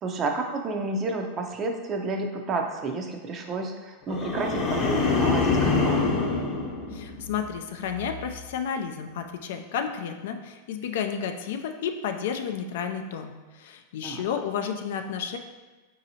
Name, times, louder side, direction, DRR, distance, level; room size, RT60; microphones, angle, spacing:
voice 1, 0.0-6.0 14.0-14.3, right 3 dB, 35° right, 4 dB, 0.5 m, -30 dB
sound 1, 4.1-7.5 7.9-8.3, left 4 dB, 45° left, 0.8 m, -25 dB
voice 2, 6.9-15.4, left 7 dB, 70° left, 6 dB, 0.3 m, -32 dB
4.0 x 2.7 x 2.7 m, 1.2 s
hypercardioid pair, 110°, 0 cm